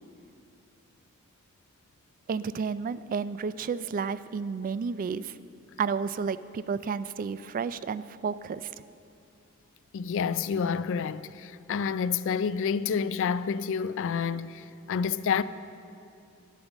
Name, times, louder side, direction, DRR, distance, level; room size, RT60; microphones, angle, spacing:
voice 1, 2.3-5.3 5.8-8.7, right 5 dB, 40° right, 0.3 m, -31 dB
voice 2, 9.9-15.4, left 6 dB, 60° left, 0.4 m, -29 dB
10.0 x 8.9 x 7.1 m
head